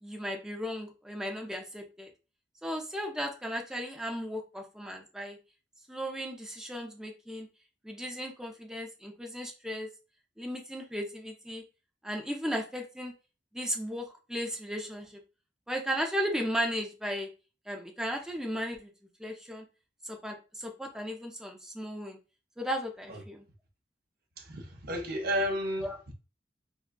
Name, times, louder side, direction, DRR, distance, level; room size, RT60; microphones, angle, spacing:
voice 1, 0.0-2.1 2.6-5.4 5.9-7.5 7.8-9.9 10.4-11.6 12.0-13.1 13.5-15.2 15.7-17.3 17.7-18.9 19.2-19.6 20.0-22.2 22.6-23.4, equal, 5° right, 0.5 m, -35 dB
voice 2, 24.4-26.1, equal, 55° right, 0.8 m, -32 dB
3.6 x 2.3 x 2.2 m
head